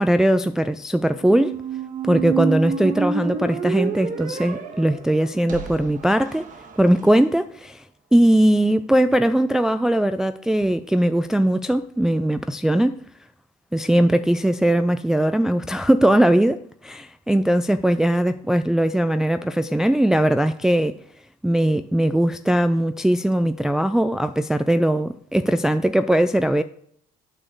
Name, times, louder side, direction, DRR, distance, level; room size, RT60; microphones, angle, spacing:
voice 1, 0.0-1.6 2.0-6.5 6.8-7.8 8.1-13.0 13.7-20.9 21.4-26.6, right 1 dB, 5° right, 0.3 m, -20 dB
Squeak, 1.2-7.2, right 6 dB, 50° right, 1.5 m, -29 dB
8.7 x 4.2 x 7.0 m
cardioid pair, 110°, 17 cm